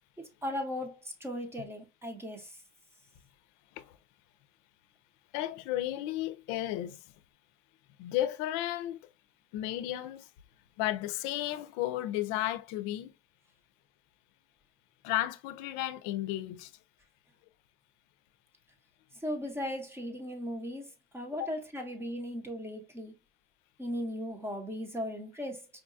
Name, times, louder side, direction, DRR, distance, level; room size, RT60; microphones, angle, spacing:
voice 1, 0.2-2.5 19.2-23.1 23.8-25.7, equal, 10° right, 0.7 m, -37 dB
voice 2, 5.3-7.0 8.0-9.1 9.5-10.3 10.8-13.1 15.0-16.7 21.4-21.5, left 14 dB, 85° left, 0.5 m, -33 dB
4.8 x 2.3 x 2.5 m
cardioid pair, 140°, 30 cm